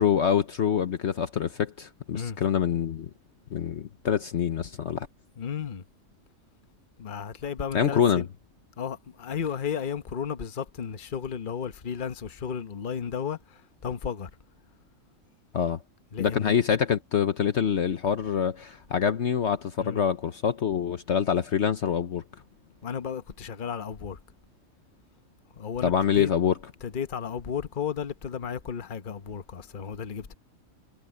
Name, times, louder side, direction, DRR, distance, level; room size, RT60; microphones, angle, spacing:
voice 1, 0.0-3.1 3.5-5.1 7.7-8.2 15.5-15.8 16.2-22.2 25.8-26.5, left 8 dB, 60° left, 1.1 m, -25 dB
voice 2, 5.4-5.8 7.0-8.3 8.8-14.3 16.1-16.6 19.8-20.0 22.8-24.2 25.5-26.3 26.8-30.3, left 7 dB, 40° left, 1.1 m, -33 dB
omnidirectional pair, 1.4 m